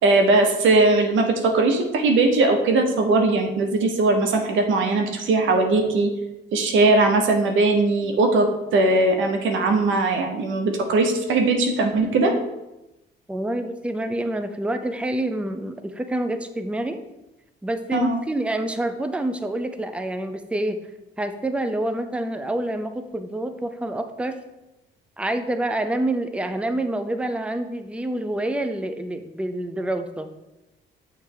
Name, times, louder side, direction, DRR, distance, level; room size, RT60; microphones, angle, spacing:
voice 1, 0.0-6.1 6.5-8.5 8.7-12.3 17.9-18.2, right 2 dB, 80° right, 4 dB, 0.9 m, -19 dB
voice 2, 13.3-17.0 17.6-20.8 21.2-24.4 25.2-30.3, right 1 dB, 5° right, 8 dB, 0.5 m, -27 dB
6.8 x 3.3 x 4.6 m, 0.97 s
cardioid pair, 90°, 20 cm